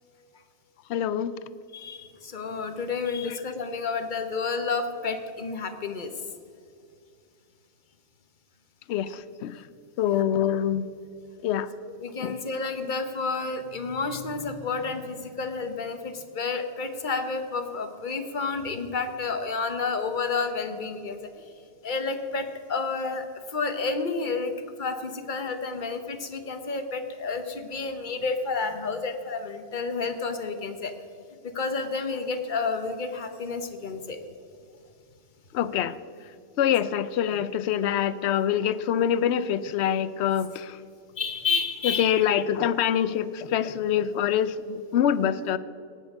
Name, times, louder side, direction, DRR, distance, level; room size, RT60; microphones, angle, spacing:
voice 1, 0.9-1.3 8.9-9.6 10.0-10.9 11.4-11.7 12.2-12.4 35.5-36.0 36.6-40.8 41.8-45.6, left 9 dB, 70° left, 15 dB, 0.8 m, -25 dB
voice 2, 1.7-6.1 10.1-10.2 11.9-21.3 21.8-24.5 24.8-30.9 31.4-34.2 36.6-36.7 41.2-42.2, left 4 dB, 45° left, 8 dB, 1.0 m, -30 dB
18.0 x 6.6 x 5.3 m, 2.4 s
omnidirectional pair, 1.2 m